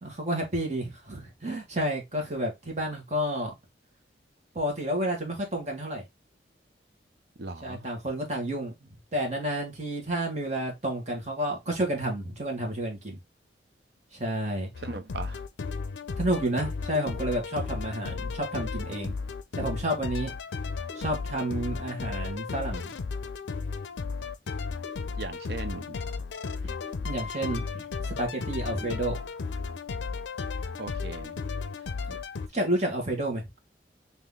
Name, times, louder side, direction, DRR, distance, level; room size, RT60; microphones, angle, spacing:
voice 1, 0.0-3.5 4.5-6.0 7.6-13.2 14.1-14.7 16.2-19.1 19.6-20.3 20.9-22.9 26.6-26.7 27.0-29.2 32.1-32.2 32.5-33.4, right 1 dB, 40° right, 1.6 m, -30 dB
voice 2, 7.4-7.9 14.8-15.4 25.2-26.0 30.8-31.4, right 3 dB, 60° right, 0.7 m, -38 dB
sound 1, 14.7-32.5, left 4 dB, 75° left, 0.5 m, -34 dB
3.8 x 3.0 x 3.5 m
head